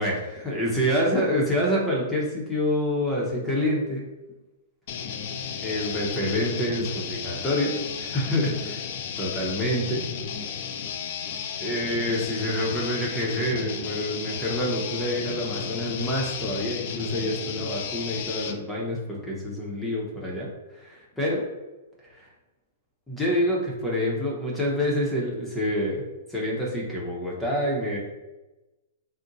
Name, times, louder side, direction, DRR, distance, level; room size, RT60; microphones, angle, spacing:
voice 1, 0.0-4.0 5.6-8.8 9.2-10.0 11.6-21.4 22.0-22.3 23.1-26.0 26.3-28.0, left 1 dB, 5° left, -4 dB, 0.7 m, -27 dB
sound 1, 4.9-18.6, left 7 dB, 55° left, 0.3 m, -33 dB
2.6 x 2.1 x 3.9 m, 1.1 s
hypercardioid pair, 125°, 0 cm